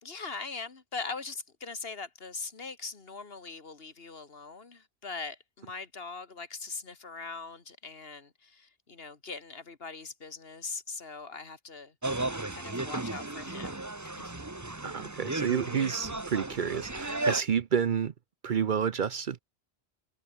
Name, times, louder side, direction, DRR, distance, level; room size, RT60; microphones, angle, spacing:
voice 1, 0.0-12.2 12.5-14.3, left 4 dB, 65° left, 2.1 m, -41 dB
sound 1, 12.0-17.4, right 2 dB, 15° right, 1.2 m, -34 dB
voice 2, 14.8-18.1 18.4-19.4, right 7 dB, 55° right, 0.8 m, -29 dB
omnidirectional pair, 1.1 m